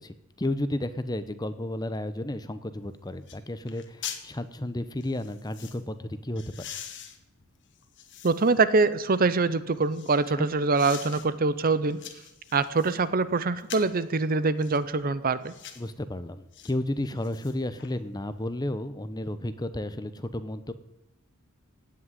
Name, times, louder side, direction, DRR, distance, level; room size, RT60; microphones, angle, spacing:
voice 1, 0.0-6.7 10.4-10.5 15.8-20.7, left 1 dB, 20° left, 12 dB, 0.8 m, -32 dB
sound 1, 2.8-2.9 3.3-3.4 3.7-4.3 5.0-5.8 6.4-8.6 9.1-10.3 10.7-11.3 11.7-13.0 13.6-14.0 14.6-14.8 15.4-15.9 16.5-16.7 17.1-17.9 18.3-18.4, left 9 dB, 55° left, 1.5 m, -43 dB
voice 2, 8.2-12.0 12.5-15.5, right 3 dB, 40° right, 15 dB, 0.7 m, -24 dB
16.5 x 6.3 x 9.8 m, 0.91 s
head